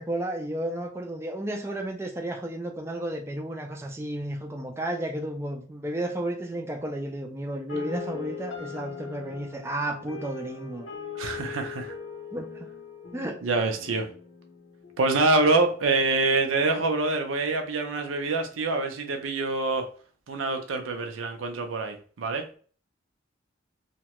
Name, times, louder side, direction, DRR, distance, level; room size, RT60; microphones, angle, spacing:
voice 1, 0.0-10.9 12.3-12.7 13.1-13.4, right 1 dB, 15° right, 0.3 m, -32 dB
sound 1, 7.7-15.7, left 6 dB, 75° left, 0.6 m, -41 dB
voice 2, 11.2-11.9 13.4-14.1 15.0-19.9 20.3-22.4, right 3 dB, 90° right, 0.5 m, -25 dB
2.8 x 2.2 x 2.9 m
head